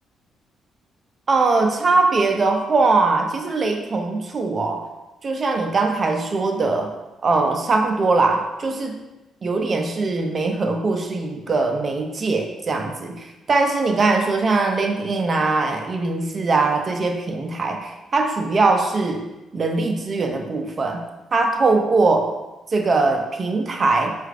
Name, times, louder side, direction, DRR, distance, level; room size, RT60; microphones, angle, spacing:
voice 1, 1.3-4.8 5.2-6.9 7.2-9.0 9.4-21.0 21.3-22.3 22.7-24.2, right 3 dB, 40° right, 4 dB, 0.5 m, -21 dB
4.6 x 2.4 x 3.2 m, 1.0 s
cardioid pair, 90°, 0 cm